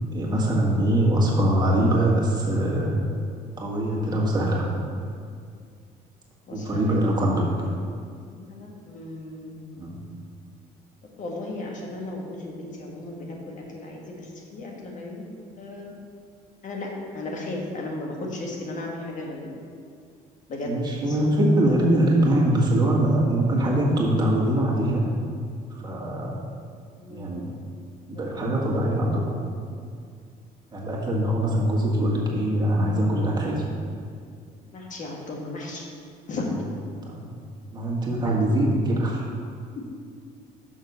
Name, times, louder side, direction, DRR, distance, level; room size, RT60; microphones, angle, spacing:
voice 1, 0.1-3.0 3.6-4.7 6.5-7.5 9.7-10.0 20.6-25.1 25.7-26.4 27.1-27.5 28.1-29.2 30.7-33.6 37.0-37.3 37.7-39.2, right 1 dB, 25° right, -4 dB, 1.7 m, -23 dB
voice 2, 6.5-7.3 8.3-9.6 11.2-15.3 15.6-15.9 16.6-19.5 20.5-20.7 21.1-21.2 27.0-27.3 28.1-28.7 34.7-35.8 36.3-36.5 38.2-38.3, left 2 dB, 50° left, -1 dB, 1.4 m, -35 dB
6.4 x 6.3 x 5.5 m, 2.2 s
cardioid pair, 110°, 17 cm